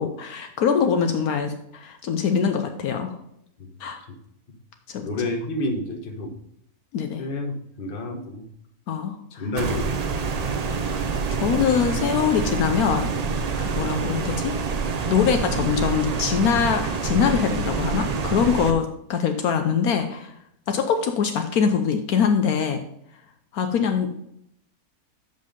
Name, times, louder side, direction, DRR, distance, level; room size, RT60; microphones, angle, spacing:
voice 1, 0.0-3.1 3.8-4.0 4.9-5.1 6.9-7.2 8.9-9.2 11.3-13.1 13.6-14.5 15.1-20.3 20.7-22.8 23.5-24.2, left 7 dB, 75° left, 6 dB, 1.2 m, -23 dB
voice 2, 5.0-6.3 7.2-8.4 9.3-10.0 10.3-10.5 13.7-13.9, left 2 dB, 40° left, 4 dB, 1.2 m, -30 dB
sound 1, 9.6-18.7, right 5 dB, 90° right, 0.3 m, -27 dB
7.4 x 5.3 x 5.2 m, 0.75 s
omnidirectional pair, 1.6 m